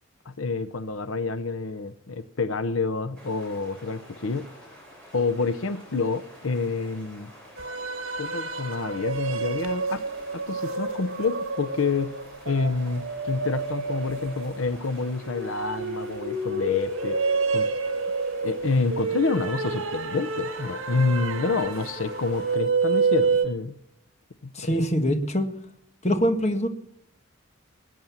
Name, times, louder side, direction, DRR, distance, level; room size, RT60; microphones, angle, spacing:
voice 1, 0.3-4.5 5.1-7.3 8.2-10.0 10.3-12.2 12.5-17.2 17.5-17.7 18.4-23.8 24.4-24.8, left 4 dB, 80° left, 0.7 m, -28 dB
sound 1, 3.1-22.6, equal, 5° left, 7.5 m, -49 dB
sound 2, 7.6-23.5, right 4 dB, 75° right, 1.7 m, -29 dB
voice 2, 24.5-25.5 26.0-26.7, equal, 35° left, 1.6 m, -23 dB
20.0 x 9.3 x 7.2 m
head